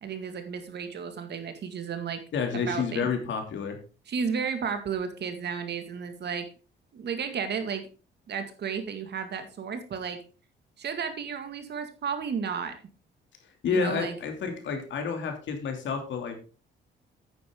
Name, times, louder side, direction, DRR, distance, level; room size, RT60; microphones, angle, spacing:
voice 1, 0.0-2.2 2.5-3.1 4.1-6.5 6.9-7.9 8.3-10.2 10.8-12.8 13.7-14.1, right 6 dB, 55° right, 8 dB, 2.0 m, -33 dB
voice 2, 2.3-3.8 13.6-16.4, left 5 dB, 70° left, 4 dB, 2.7 m, -29 dB
9.4 x 9.0 x 3.7 m, 0.36 s
cardioid pair, 90°, 20 cm